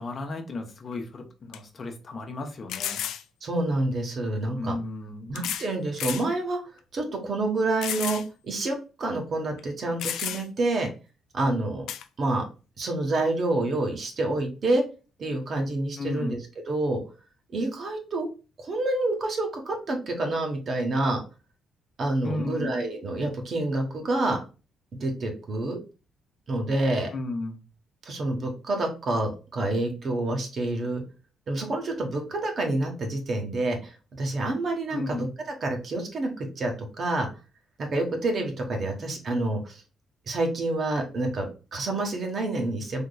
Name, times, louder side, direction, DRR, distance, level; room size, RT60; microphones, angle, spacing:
voice 1, 0.0-3.0 4.6-5.4 16.0-16.4 22.2-22.8 27.1-27.6 34.9-35.3, left 2 dB, 45° left, 4 dB, 0.8 m, -34 dB
sound 1, 0.9-1.0 1.5-1.6 2.7-3.2 4.4-4.5 5.4-5.7 6.0-6.3 6.8-6.9 7.8-8.3 8.6-8.7 9.6-9.7 10.0-10.6 11.9-12.1, left 10 dB, 85° left, 0.4 m, -32 dB
voice 2, 3.4-4.7 5.3-6.6 6.9-10.9 11.3-11.9 12.2-12.4 12.8-14.8 15.2-16.4 16.7-17.0 17.5-18.3 18.6-21.2 22.0-24.4 25.0-25.8 26.5-27.1 28.0-31.0 31.5-35.3 35.6-37.3 37.8-39.8 40.3-43.0, right 2 dB, 50° right, 2 dB, 1.1 m, -28 dB
3.6 x 2.9 x 2.2 m, 0.32 s
cardioid pair, 90°, 0 cm